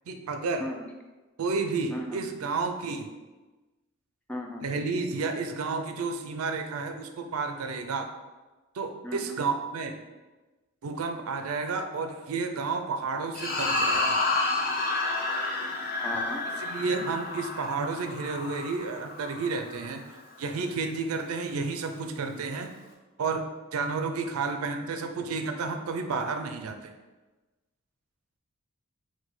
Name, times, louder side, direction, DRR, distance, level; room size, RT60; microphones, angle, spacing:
voice 1, 0.1-0.7 1.4-3.1 4.6-8.1 8.7-10.0 10.8-14.2 16.6-20.0 20.4-22.7 23.2-26.9, right 4 dB, 75° right, 6 dB, 0.4 m, -31 dB
voice 2, 4.3-4.6 9.0-9.4 16.0-16.4, left 1 dB, 5° left, 1 dB, 0.4 m, -36 dB
sound 1, 13.3-19.9, left 2 dB, 45° left, 0.7 m, -30 dB
4.7 x 2.2 x 4.0 m, 1.2 s
head